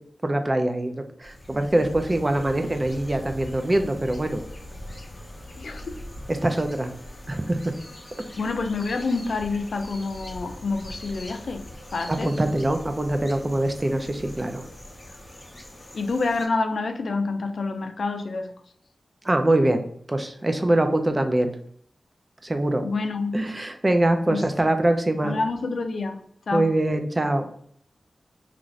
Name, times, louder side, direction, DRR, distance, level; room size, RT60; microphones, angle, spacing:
voice 1, 0.2-4.4 6.4-6.9 7.3-7.7 12.1-14.6 19.2-19.8 20.1-21.5 22.4-22.8 23.3-25.4 26.5-27.5, right 1 dB, 30° right, 6 dB, 0.4 m, -23 dB
sound 1, 1.2-16.5, left 1 dB, 30° left, 0.7 m, -42 dB
voice 2, 5.6-6.0 8.4-11.7 11.9-12.3 15.9-18.5 22.8-23.4 24.3-24.5 25.2-26.2 26.5-26.7, left 3 dB, 75° left, 6 dB, 0.4 m, -27 dB
2.5 x 2.4 x 3.1 m, 0.62 s
wide cardioid pair, 75°, 0 cm